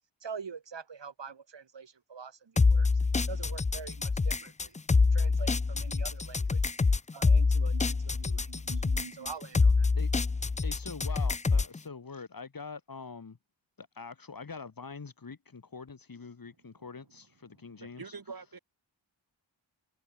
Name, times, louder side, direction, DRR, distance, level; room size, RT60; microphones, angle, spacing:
voice 1, 0.2-2.9 3.3-4.8 5.1-6.7 7.1-9.9, right 6 dB, 65° right, 2.9 m, -45 dB
sound 1, 2.6-11.8, left 4 dB, 15° left, 0.4 m, -26 dB
voice 2, 10.6-13.4 13.8-18.0, left 4 dB, 45° left, 3.0 m, -44 dB
voice 3, 17.5-18.6, right 4 dB, 50° right, 4.7 m, -46 dB
wide cardioid pair, 115°, 46 cm